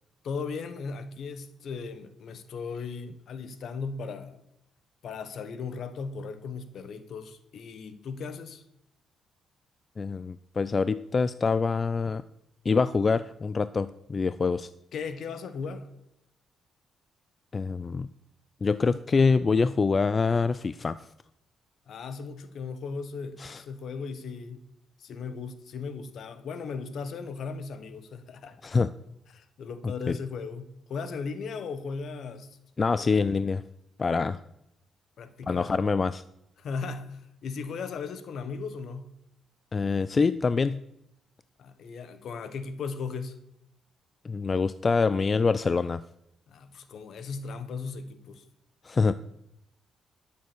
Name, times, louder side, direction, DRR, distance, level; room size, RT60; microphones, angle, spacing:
voice 1, 0.2-4.4 5.0-8.6 14.9-15.9 21.9-24.6 25.0-28.6 29.3-32.5 32.9-33.1 35.2-35.7 36.6-39.1 41.6-43.4 46.5-48.4, left 5 dB, 65° left, 11 dB, 1.4 m, -37 dB
voice 2, 10.0-12.2 12.7-14.7 17.5-18.1 18.6-21.0 23.4-23.6 28.6-28.9 29.8-30.2 32.8-33.6 34.0-34.4 35.5-36.2 39.7-40.8 44.2-46.0 48.8-49.1, left 4 dB, 35° left, 15 dB, 0.4 m, -25 dB
12.5 x 7.4 x 6.3 m, 0.81 s
cardioid pair, 90°, 0 cm